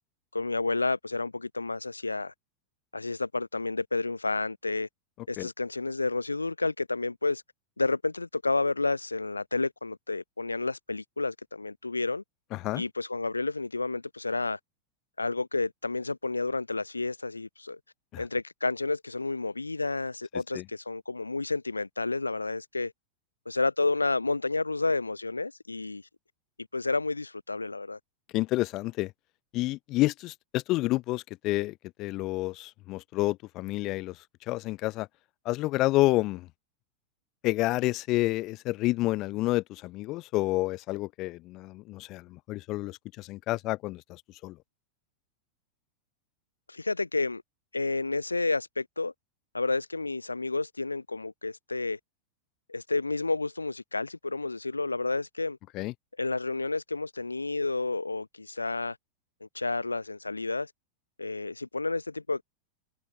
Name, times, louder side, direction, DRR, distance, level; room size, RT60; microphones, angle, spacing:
voice 1, 0.3-2.3 2.9-4.9 5.3-7.4 7.8-12.2 12.7-14.6 15.2-17.8 18.2-22.9 23.5-26.0 26.7-28.0 46.7-47.4 47.7-49.1 49.5-52.0 52.7-55.6 56.2-59.0 59.4-60.7 61.2-62.4, left 3 dB, 80° left, 0.3 m, -30 dB
voice 2, 12.5-12.8 18.1-18.2 20.5-20.6 28.3-29.1 29.5-34.2 34.5-35.1 35.4-36.5 37.4-44.6 55.7-55.9, left 19 dB, 40° left, 0.6 m, -29 dB
figure-of-eight pair, 90°, 0 cm